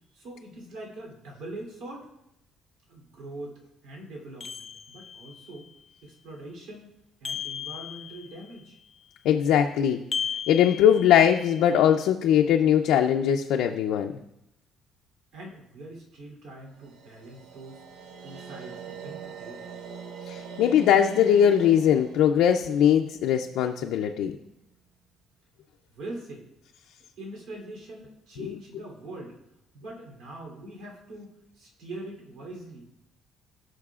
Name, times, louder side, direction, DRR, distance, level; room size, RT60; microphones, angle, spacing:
voice 1, 0.1-2.1 2.9-5.7 6.0-6.9 7.2-8.8 15.3-17.8 18.2-19.6 25.9-26.4 27.2-29.4 29.7-32.9, right 1 dB, 85° right, -1 dB, 3.1 m, -42 dB
sound 1, 4.4-5.4 7.2-8.5 10.1-11.6, left 7 dB, 30° left, 0.5 m, -35 dB
voice 2, 9.2-10.0 10.5-14.1 20.3-24.4 28.4-28.5, left 9 dB, 85° left, 3 dB, 0.5 m, -21 dB
sound 2, 16.7-23.9, right 6 dB, 65° right, 1.0 m, -43 dB
17.0 x 6.4 x 2.4 m, 0.83 s
cardioid pair, 155°, 0 cm